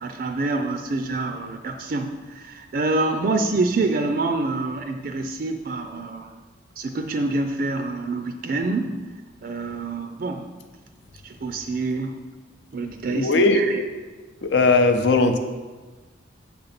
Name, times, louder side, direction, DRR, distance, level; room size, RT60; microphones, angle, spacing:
voice 1, 0.0-6.3 6.8-9.0 9.4-10.5 11.2-12.2 12.7-13.8, right 3 dB, 50° right, 6 dB, 0.4 m, -26 dB
voice 2, 13.1-13.6 14.4-15.4, left 3 dB, 65° left, 7 dB, 0.6 m, -18 dB
7.0 x 3.9 x 5.8 m, 1.3 s
head